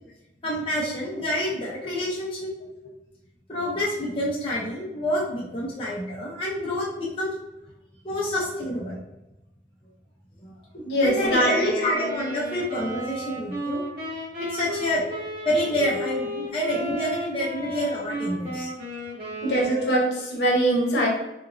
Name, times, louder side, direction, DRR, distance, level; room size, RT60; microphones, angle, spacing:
voice 1, 0.4-2.5 3.5-7.3 8.0-9.0 10.4-10.5 11.0-13.8 14.4-15.0 15.4-18.7, left 1 dB, 30° left, -6 dB, 0.6 m, -27 dB
voice 2, 10.8-11.7 19.4-21.1, right 1 dB, 70° left, -3 dB, 0.9 m, -22 dB
Wind instrument woodwind instrument, 11.2-20.2, equal, 55° right, 1.1 m, -34 dB
2.9 x 2.5 x 2.6 m, 0.94 s
head